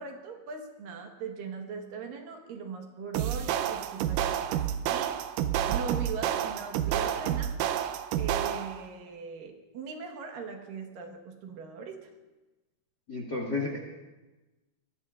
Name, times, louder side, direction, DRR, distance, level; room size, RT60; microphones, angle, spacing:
voice 1, 0.0-4.6 4.9-5.2 5.7-7.5 8.2-12.1, right 5 dB, 70° right, 3 dB, 2.8 m, -40 dB
sound 1, 3.1-8.9, right 10 dB, 90° right, 1.8 m, -29 dB
voice 2, 13.1-13.8, left 3 dB, 45° left, -1 dB, 1.3 m, -31 dB
24.0 x 18.0 x 2.4 m, 1.1 s
omnidirectional pair, 4.4 m